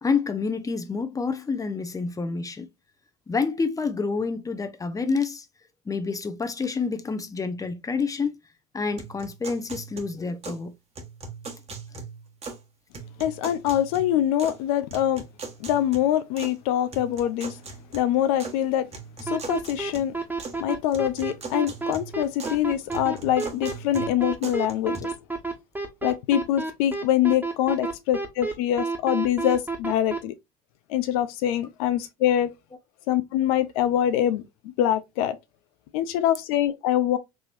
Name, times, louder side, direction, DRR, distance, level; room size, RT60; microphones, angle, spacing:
voice 1, 0.0-2.7 3.3-5.5 5.9-8.3 8.7-10.7, left 4 dB, 15° left, 0.7 m, -28 dB
sound 1, 9.0-10.7 10.9-12.7 12.9-14.6 14.9-16.5 16.9-18.6 18.9-20.6 20.9-22.6 22.9-25.0, right 4 dB, 35° right, 1.2 m, -40 dB
voice 2, 13.2-15.2 15.6-17.6 17.9-18.9 19.2-20.1 20.6-25.1 26.0-30.3 30.9-32.5 33.1-34.4 34.8-35.4 35.9-37.2, left 11 dB, 70° left, 0.5 m, -24 dB
sound 2, 19.3-30.2, right 3 dB, 10° right, 1.3 m, -29 dB
4.7 x 2.9 x 2.5 m
hypercardioid pair, 75°, 20 cm